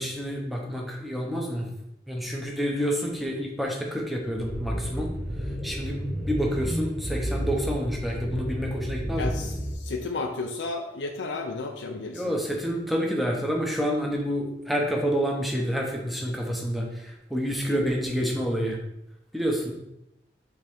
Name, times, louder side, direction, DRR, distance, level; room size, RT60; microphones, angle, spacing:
voice 1, 0.0-1.7 2.1-5.1 5.6-9.3 12.1-18.8 19.3-19.7, equal, ahead, 0 dB, 0.8 m, -28 dB
sound 1, 4.3-9.7, equal, 40° right, 2.0 m, -31 dB
voice 2, 9.2-12.4, left 3 dB, 85° left, 3 dB, 0.5 m, -33 dB
7.8 x 3.6 x 3.6 m, 0.87 s
head